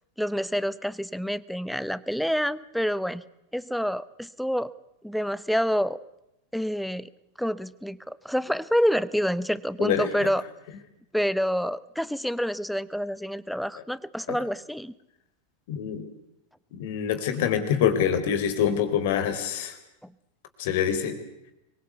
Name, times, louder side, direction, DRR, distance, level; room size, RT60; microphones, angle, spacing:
voice 1, 0.2-3.2 3.5-4.7 5.0-6.0 6.5-7.1 7.4-10.4 11.1-14.9 20.0-20.1, equal, ahead, 18 dB, 0.9 m, -27 dB
voice 2, 9.8-10.3 14.3-14.4 15.7-16.1 16.7-19.8 20.6-21.2, left 8 dB, 50° left, 8 dB, 4.1 m, -25 dB
25.5 x 23.0 x 8.3 m, 0.87 s
figure-of-eight pair, 90°, 0 cm